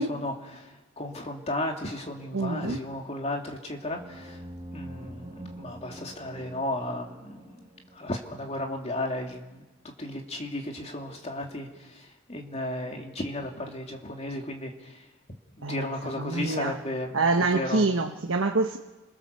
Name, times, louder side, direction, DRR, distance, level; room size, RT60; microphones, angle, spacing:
voice 1, 0.0-4.4 4.7-7.6 7.9-9.7 10.0-15.1 15.6-17.9, left 1 dB, 35° left, 2 dB, 2.7 m, -34 dB
voice 2, 2.3-2.8 15.6-15.9 16.2-16.7 17.1-18.8, right 3 dB, 80° right, 3 dB, 1.2 m, -26 dB
sound 1, 3.9-8.4, right 1 dB, 25° right, 1.3 m, -45 dB
29.5 x 22.0 x 6.9 m, 1.2 s
head